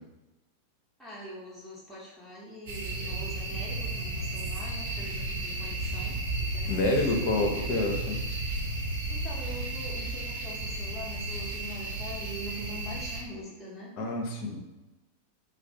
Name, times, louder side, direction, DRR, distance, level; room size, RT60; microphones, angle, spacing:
voice 1, 1.0-7.6 9.1-14.0, equal, 5° right, -6 dB, 0.6 m, -43 dB
sound 1, 2.7-13.2, right 2 dB, 55° right, 0.5 m, -33 dB
voice 2, 6.7-8.2 14.0-14.6, left 2 dB, 45° left, 2 dB, 0.4 m, -28 dB
2.3 x 2.1 x 2.7 m, 1.1 s
figure-of-eight pair, 90°, 0 cm